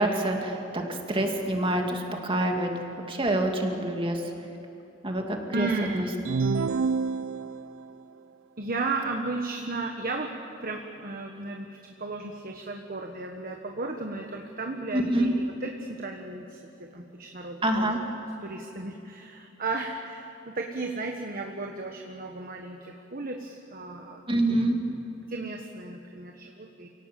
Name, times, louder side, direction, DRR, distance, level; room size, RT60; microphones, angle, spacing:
voice 1, 0.0-2.7 3.1-4.2 5.0-5.7 5.9-6.1 14.9-15.3 17.6-18.0 24.3-24.8, right 1 dB, 25° right, 2 dB, 2.5 m, -26 dB
voice 2, 5.5-6.0 8.6-10.3 10.6-17.9 18.4-24.2 25.2-26.9, right 3 dB, 45° right, 3 dB, 1.4 m, -34 dB
sound 1, 6.3-7.8, right 4 dB, 80° right, 0.5 m, -27 dB
28.5 x 18.5 x 7.6 m, 2.9 s
head